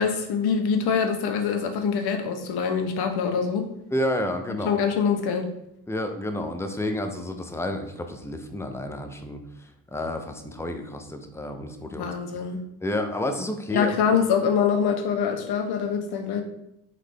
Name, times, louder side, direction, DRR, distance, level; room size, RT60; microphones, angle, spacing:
voice 1, 0.0-3.7 4.6-5.5 11.9-12.6 13.7-16.4, left 6 dB, 50° left, 5 dB, 0.9 m, -24 dB
voice 2, 3.9-4.8 5.9-12.4 12.8-13.9, left 1 dB, 5° left, 5 dB, 0.4 m, -30 dB
3.9 x 3.1 x 3.2 m, 0.82 s
hypercardioid pair, 70°, 47 cm